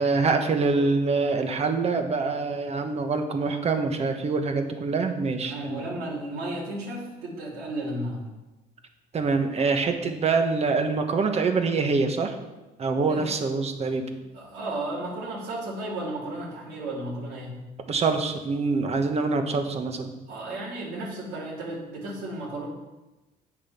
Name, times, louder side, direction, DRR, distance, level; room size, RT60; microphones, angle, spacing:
voice 1, 0.0-5.9 9.1-12.3 12.8-14.0 17.9-20.1, right 4 dB, 40° right, 5 dB, 1.4 m, -25 dB
voice 2, 5.4-8.2 13.1-13.3 14.2-17.5 20.3-22.7, right 1 dB, 80° right, -6 dB, 3.2 m, -34 dB
8.5 x 7.3 x 5.9 m, 1.1 s
cardioid pair, 110°, 17 cm